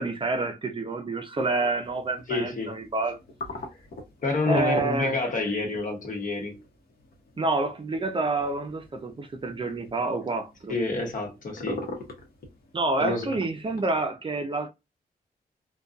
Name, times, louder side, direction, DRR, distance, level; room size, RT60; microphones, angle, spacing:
voice 1, 0.0-3.2 4.5-5.2 7.4-10.8 12.7-14.7, right 2 dB, 35° right, 0.5 m, -28 dB
sound 1, 1.5-14.1, left 2 dB, 85° left, 0.9 m, -43 dB
voice 2, 2.3-2.8 4.2-6.6 10.7-11.8 13.0-13.4, left 3 dB, 60° left, 1.0 m, -28 dB
2.6 x 2.2 x 2.3 m
wide cardioid pair, 110°, 15 cm